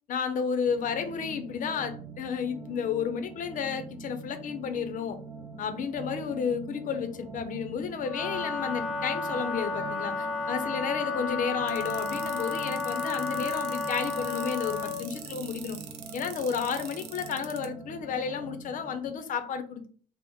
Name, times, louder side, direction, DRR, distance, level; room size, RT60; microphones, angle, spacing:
voice 1, 0.1-5.2 5.6-15.8 16.1-19.9, left 6 dB, 50° left, 9 dB, 0.5 m, -32 dB
sound 1, 0.6-19.1, right 3 dB, 15° right, 0.5 m, -44 dB
Wind instrument woodwind instrument, 8.0-15.1, left 4 dB, 5° left, 1.1 m, -32 dB
sound 2, 11.7-17.7, right 10 dB, 70° right, 0.5 m, -43 dB
2.9 x 2.0 x 3.5 m, 0.43 s
cardioid pair, 110°, 17 cm